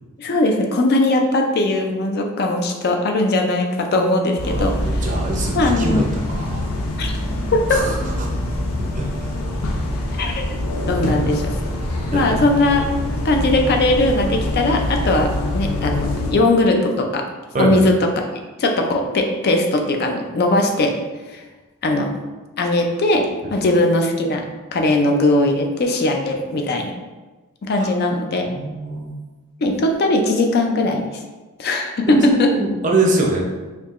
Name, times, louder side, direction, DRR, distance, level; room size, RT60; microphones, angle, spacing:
voice 1, 0.2-5.1 5.5-6.1 7.0-7.1 7.5-7.6 10.2-10.4 10.9-11.5 12.1-12.9 13.2-17.2 17.6-18.2 18.6-21.0 21.3-21.4 21.8-22.1 22.6-24.4 24.7-26.9 27.6-28.5 29.6-31.0 31.6-32.5, left 2 dB, 45° left, 3 dB, 0.4 m, -19 dB
sound 1, 4.4-16.3, left 1 dB, 90° left, 0.6 m, -24 dB
voice 2, 4.5-6.7 7.7-8.0 8.8-9.3 12.1-12.4 17.5-17.8 23.4-23.5 27.8-27.9 28.5-29.1 32.1-33.4, right 2 dB, 35° right, -1 dB, 0.5 m, -23 dB
4.5 x 2.8 x 2.4 m, 1.2 s
head